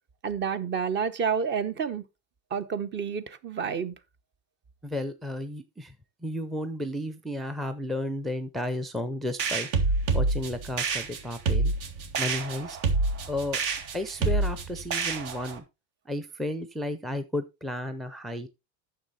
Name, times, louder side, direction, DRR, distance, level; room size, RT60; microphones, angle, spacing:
voice 1, 0.2-2.0 2.5-3.9, right 6 dB, 35° right, 0.9 m, -29 dB
voice 2, 4.8-5.9 6.2-9.7 10.1-11.7 12.2-12.8 13.3-13.6 13.9-15.6 16.1-18.5, left 1 dB, ahead, 0.5 m, -33 dB
sound 1, 9.4-15.6, right 3 dB, 65° right, 2.2 m, -27 dB
9.7 x 6.8 x 4.1 m
cardioid pair, 150°, 33 cm